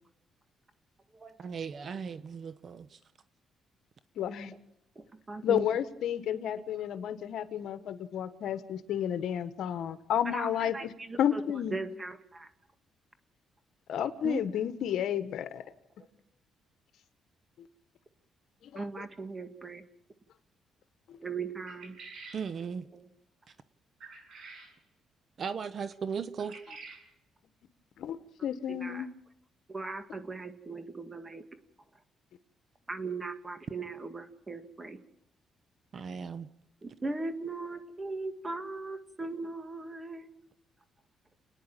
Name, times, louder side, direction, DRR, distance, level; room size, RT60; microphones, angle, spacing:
voice 1, 1.4-3.0 14.2-14.4 22.3-22.9 25.4-26.6 35.9-36.5, right 6 dB, 50° right, 0.9 m, -37 dB
voice 2, 4.2-4.5 5.4-10.9 11.2-11.8 13.9-15.6 18.7-18.8 21.1-21.2 28.0-29.1, left 9 dB, 75° left, 1.4 m, -31 dB
voice 3, 5.0-5.8 6.3-7.2 7.6-7.7 10.2-12.5 18.7-19.8 21.2-22.0 22.9-23.1 26.7-26.8 28.4-29.1 29.7-31.4 32.9-35.0 36.8-40.3, right 3 dB, 25° right, 1.9 m, -39 dB
sound 1, 21.7-22.4 24.0-24.7 26.4-27.0, right 4 dB, 65° right, 6.8 m, -48 dB
29.5 x 10.0 x 8.9 m
cardioid pair, 90°, 0 cm